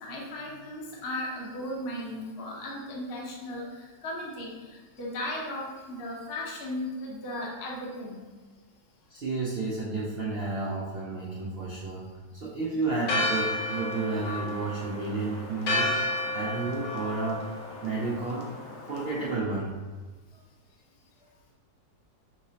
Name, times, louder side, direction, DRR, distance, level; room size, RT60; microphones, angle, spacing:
voice 1, 0.0-3.7 4.0-4.5 5.0-8.3, left 1 dB, 45° left, -3 dB, 0.8 m, -36 dB
voice 2, 9.1-12.0 12.3-16.0 16.3-19.7, right 3 dB, 65° right, -7 dB, 0.6 m, -32 dB
Church bell, 13.0-19.3, left 1 dB, 90° left, 1.4 m, -32 dB
5.8 x 3.0 x 2.8 m, 1.3 s
omnidirectional pair, 1.9 m